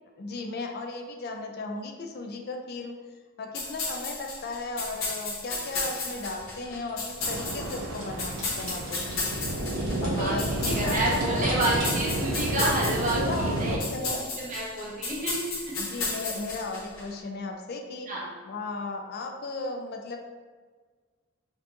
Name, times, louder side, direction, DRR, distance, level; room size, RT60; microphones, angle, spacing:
voice 1, 0.2-2.9 3.4-9.2 10.0-11.7 12.3-12.6 13.1-14.3 14.8-14.9 15.7-18.1 18.4-20.2, left 3 dB, 50° left, 3 dB, 0.4 m, -36 dB
sound 1, 3.5-17.0, left 3 dB, 75° left, 0.8 m, -34 dB
sound 2, 5.7-8.1 8.4-12.1, right 1 dB, 85° right, 1.3 m, -42 dB
sound 3, 7.2-13.8, right 1 dB, 70° right, 0.6 m, -30 dB
voice 2, 10.6-13.8 14.4-15.3 15.7-15.8 18.1-18.3, right 1 dB, 40° right, -5 dB, 1.0 m, -29 dB
4.4 x 2.5 x 2.8 m, 1.5 s
head